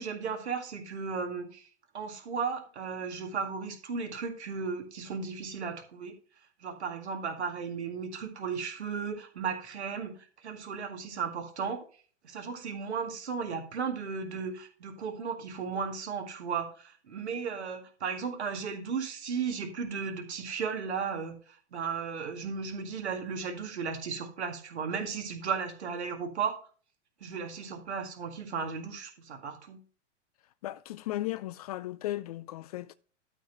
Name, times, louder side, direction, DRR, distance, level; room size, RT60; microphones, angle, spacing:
voice 1, 0.0-1.7 1.9-6.2 6.6-11.8 12.2-26.6 27.2-29.8, right 6 dB, 65° right, 2.0 m, -35 dB
voice 2, 30.6-32.9, left 15 dB, 35° left, 0.4 m, -36 dB
12.0 x 4.6 x 5.2 m
figure-of-eight pair, 95°, 36 cm